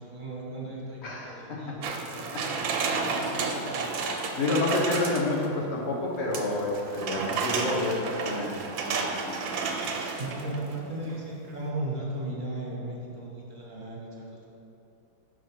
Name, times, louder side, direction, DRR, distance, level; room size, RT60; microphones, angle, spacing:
voice 1, 0.0-2.5 3.1-3.9 7.0-7.3 10.2-14.5, right 1 dB, 30° right, -4 dB, 1.0 m, -37 dB
voice 2, 1.0-1.8 2.3-2.4 2.9-3.0 4.4-9.4, left 2 dB, 40° left, -3 dB, 1.2 m, -29 dB
sound 1, 1.8-5.5 6.3-10.7 11.1-11.2, right 4 dB, 90° right, 1.5 m, -31 dB
5.6 x 5.2 x 6.0 m, 2.8 s
omnidirectional pair, 2.1 m